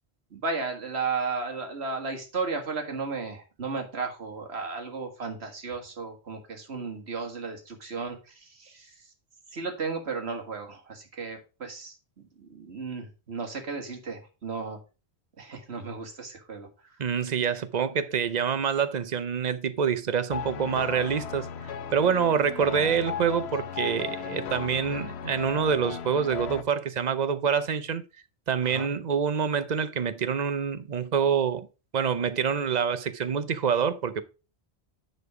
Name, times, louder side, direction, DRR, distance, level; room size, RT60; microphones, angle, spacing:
voice 1, 0.3-9.1 9.5-12.0 12.4-14.8 15.4-17.0 28.6-28.9, right 4 dB, 75° right, 2.0 m, -34 dB
voice 2, 17.0-21.5 21.9-28.0 28.5-31.7 31.9-34.2, right 7 dB, 45° right, 0.7 m, -26 dB
sound 1, 20.3-26.6, left 7 dB, 80° left, 0.9 m, -36 dB
9.7 x 4.4 x 4.8 m
omnidirectional pair, 1.1 m